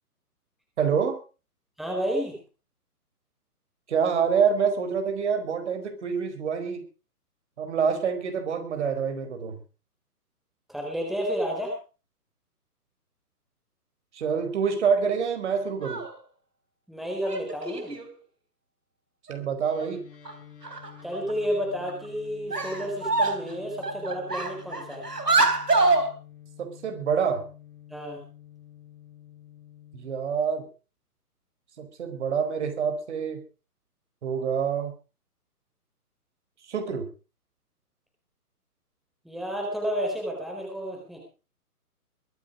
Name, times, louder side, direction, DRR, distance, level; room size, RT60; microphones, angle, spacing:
voice 1, 0.8-1.2 3.9-6.8 7.6-9.6 14.1-16.0 19.3-20.0 26.6-27.4 29.9-30.7 31.8-33.4 34.2-34.9 36.7-37.1, right 6 dB, 45° right, 6 dB, 4.7 m, -26 dB
voice 2, 1.8-2.4 10.7-11.8 16.9-18.0 21.0-25.1 27.9-28.2 39.2-41.2, equal, ahead, 0 dB, 4.2 m, -31 dB
sound 1, 15.7-16.1 17.2-18.1 19.3-19.4 19.8-19.9 20.2-20.3 20.6-21.3 21.9-22.1 22.5-23.5 23.8-26.1, right 3 dB, 85° right, 3.9 m, -25 dB
sound 2, 19.6-30.1, left 10 dB, 35° left, 5.2 m, -49 dB
23.0 x 9.5 x 5.1 m, 0.35 s
figure-of-eight pair, 135°, 46 cm